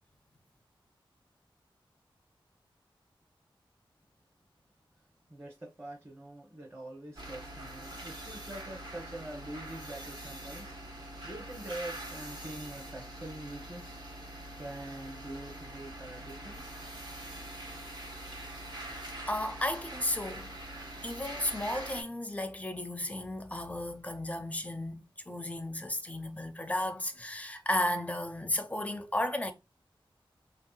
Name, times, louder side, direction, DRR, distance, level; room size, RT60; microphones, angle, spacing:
voice 1, 5.3-14.0 14.6-16.7, right 1 dB, 20° right, 0.8 m, -44 dB
sound 1, 7.2-22.0, right 1 dB, 50° right, 0.9 m, -44 dB
voice 2, 19.3-20.5 21.0-29.5, left 1 dB, 15° left, 0.4 m, -34 dB
3.2 x 2.7 x 2.3 m
wide cardioid pair, 90°, 9 cm